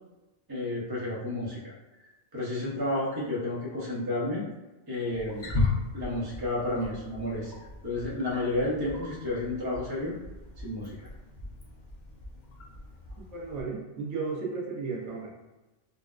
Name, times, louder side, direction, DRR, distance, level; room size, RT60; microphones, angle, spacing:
voice 1, 0.5-1.6 2.3-4.5 4.9-5.5 5.9-10.1 10.6-10.9, left 1 dB, 25° right, -5 dB, 0.7 m, -31 dB
Wild animals, 5.1-13.6, left 3 dB, 50° left, 0.7 m, -36 dB
voice 2, 13.3-15.3, right 4 dB, 90° right, -3 dB, 1.1 m, -34 dB
3.9 x 2.1 x 2.4 m, 1.1 s
omnidirectional pair, 1.1 m